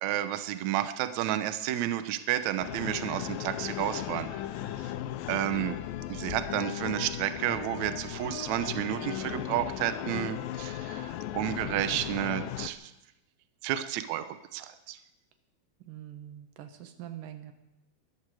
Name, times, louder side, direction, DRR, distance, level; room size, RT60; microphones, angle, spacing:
voice 1, 0.0-4.4 5.3-5.8 6.1-12.9 13.6-14.3 14.5-15.0, right 12 dB, 85° right, 10 dB, 1.6 m, -31 dB
sound 1, 2.6-12.7, left 13 dB, 80° left, 2.3 m, -36 dB
voice 2, 15.8-17.5, right 11 dB, 70° right, 7 dB, 2.7 m, -44 dB
22.0 x 13.5 x 4.8 m, 0.95 s
omnidirectional pair, 4.3 m